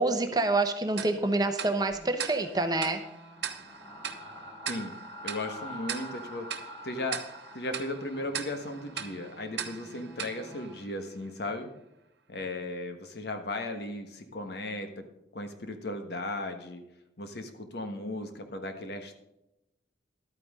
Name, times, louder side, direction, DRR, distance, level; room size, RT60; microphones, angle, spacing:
voice 1, 0.0-3.0, right 2 dB, 20° right, 7 dB, 0.8 m, -27 dB
Tick-tock, 1.0-11.4, right 8 dB, 70° right, 0.9 m, -41 dB
sound 1, 1.9-10.8, equal, 30° left, 3.7 m, -47 dB
voice 2, 5.2-6.5 6.8-7.2 7.5-11.7 12.3-15.1 15.3-16.8 17.2-19.2, left 2 dB, 60° left, 6 dB, 1.4 m, -36 dB
12.0 x 9.3 x 3.7 m, 0.88 s
head